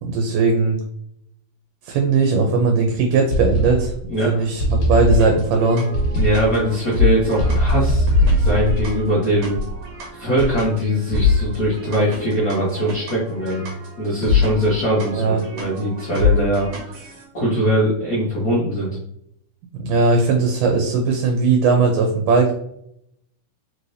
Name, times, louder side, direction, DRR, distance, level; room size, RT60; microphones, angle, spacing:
voice 1, 0.0-0.8 1.9-3.9 4.2-5.8 15.1-15.4 19.8-22.5, right 4 dB, 80° right, 2 dB, 2.2 m, -18 dB
sound 1, 3.3-4.2 4.6-5.5 5.9-6.7 7.4-9.9 10.4-10.7 11.1-11.6, right 1 dB, 70° left, 2.2 m, -21 dB
sound 2, 5.1-17.2, left 6 dB, 65° right, 2.1 m, -25 dB
voice 2, 6.1-8.1 8.4-9.6 10.1-13.7 14.0-16.7 17.3-18.9, equal, 85° left, -8 dB, 0.7 m, -21 dB
5.0 x 3.2 x 2.6 m, 0.73 s
omnidirectional pair, 3.7 m